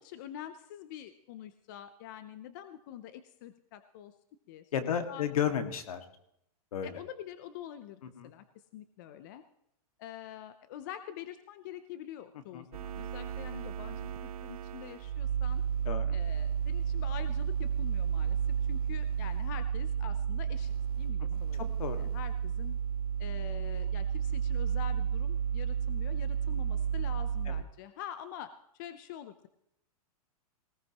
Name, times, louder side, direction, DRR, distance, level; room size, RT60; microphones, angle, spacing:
voice 1, 0.0-4.1 4.5-5.2 6.8-8.4 8.7-9.4 10.0-15.6 16.1-18.4 18.7-22.7 23.2-29.5, left 10 dB, 30° left, 11 dB, 0.6 m, -46 dB
voice 2, 4.7-6.0 6.7-7.0 8.2-8.3 12.5-12.6 15.9-16.2 21.3-21.4 21.8-22.1 27.5-27.6, left 8 dB, 70° left, 7 dB, 1.9 m, -33 dB
sound 1, 12.7-27.6, right 8 dB, 75° right, 0.5 m, -32 dB
19.0 x 18.0 x 3.0 m, 0.77 s
supercardioid pair, 175°, 19 cm